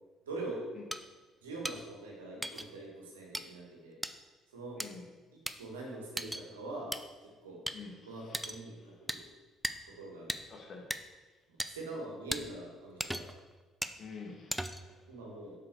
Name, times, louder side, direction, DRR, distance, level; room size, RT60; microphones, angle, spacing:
voice 1, 0.2-0.6 1.4-4.0 4.5-4.8 5.3-6.9 7.2-7.6 8.0-9.3 10.0-10.4 11.6-13.3 15.1-15.6, right 2 dB, 80° right, -2 dB, 1.8 m, -43 dB
sound 1, 0.9-1.0 1.6-1.8 2.4-2.7 3.3-3.4 4.0-4.1 4.8-4.9 5.5-5.6 6.2-6.4 6.9-7.0 7.7-7.8 8.3-8.6 9.1-9.2 9.6-9.8 10.3-10.4 10.9-11.0 11.6-11.7 12.3-12.4 13.0-13.4 13.8-14.0 14.5-14.9, right 1 dB, 5° right, 0.5 m, -36 dB
voice 2, 7.7-8.4 10.5-10.8 14.0-15.0, left 4 dB, 45° left, 0 dB, 1.7 m, -48 dB
7.6 x 6.1 x 4.6 m, 1.3 s
figure-of-eight pair, 50°, 0 cm